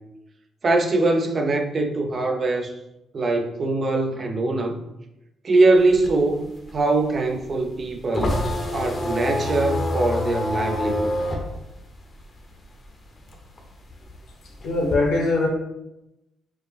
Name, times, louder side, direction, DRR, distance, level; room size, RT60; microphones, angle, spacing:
voice 1, 0.6-2.7 3.1-4.8 5.4-8.4 8.7-11.1, right 2 dB, 40° right, 0.5 m, -22 dB
sound 1, 5.8-12.9 13.2-14.9, left 1 dB, 35° left, 0.7 m, -27 dB
voice 2, 14.6-15.5, left 2 dB, 80° left, 1.0 m, -21 dB
4.6 x 2.1 x 3.3 m
cardioid pair, 90°, 0 cm